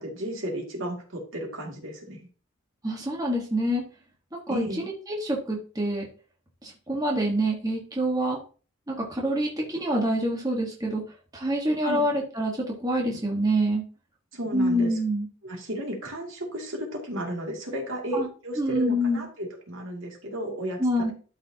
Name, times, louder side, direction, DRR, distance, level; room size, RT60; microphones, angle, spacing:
voice 1, 0.0-2.3 4.5-4.9 11.8-12.1 14.3-15.0 15.4-21.1, equal, 70° right, 0 dB, 2.4 m, -33 dB
voice 2, 2.8-3.8 4.5-6.1 6.6-8.4 8.9-11.0 11.3-12.5 12.8-13.8 14.5-15.3 18.1-18.3 18.6-19.2 20.8-21.1, equal, 15° right, -1 dB, 1.3 m, -26 dB
12.0 x 4.9 x 2.8 m, 0.38 s
head